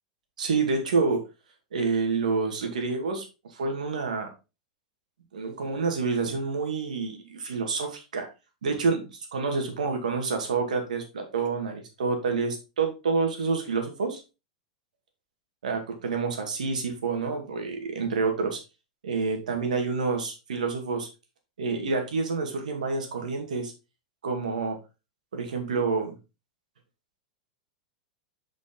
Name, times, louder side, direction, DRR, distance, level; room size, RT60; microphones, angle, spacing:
voice 1, 0.4-1.2 1.7-3.2 3.5-4.3 5.3-8.3 8.6-14.2 15.6-18.6 19.0-21.1 21.6-23.7 24.2-24.8 25.3-26.1, right 4 dB, 90° right, 4 dB, 2.2 m, -28 dB
6.9 x 5.1 x 3.8 m, 0.28 s
hypercardioid pair, 115°, 4 cm